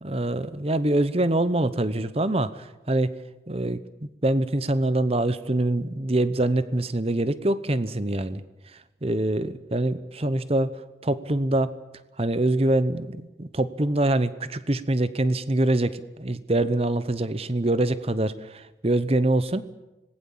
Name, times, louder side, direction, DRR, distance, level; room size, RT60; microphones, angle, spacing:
voice 1, 0.0-3.2 3.5-3.8 4.2-8.4 9.0-10.8 11.0-11.7 12.2-19.6, right 1 dB, 30° right, 14 dB, 0.9 m, -24 dB
26.0 x 19.5 x 7.4 m, 1.0 s
head